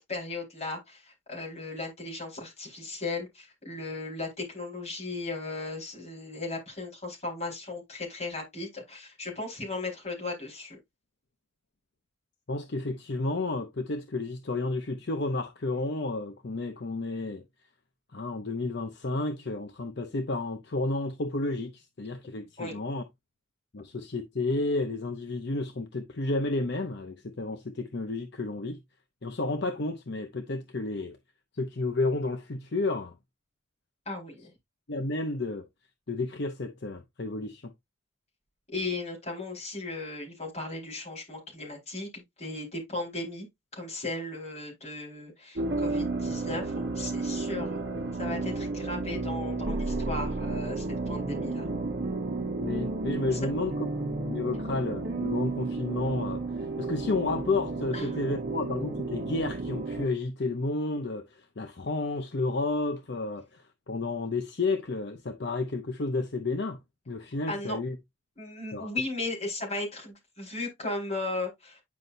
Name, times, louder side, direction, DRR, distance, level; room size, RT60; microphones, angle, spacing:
voice 1, 0.0-10.8 22.6-22.8 34.1-34.5 38.7-43.5 43.7-47.8 48.2-51.7 53.3-53.4 57.9-58.1 67.5-67.8 68.4-71.8, left 2 dB, 35° left, 4.3 m, -36 dB
voice 2, 12.5-17.4 18.1-23.0 23.7-28.8 29.2-31.2 31.5-33.1 34.9-35.7 36.1-37.7 52.6-56.4 56.8-66.8 67.1-68.0 68.7-68.9, left 2 dB, 60° left, 0.7 m, -31 dB
sound 1, 45.5-60.1, right 3 dB, 55° right, 1.1 m, -32 dB
9.6 x 5.5 x 2.6 m
head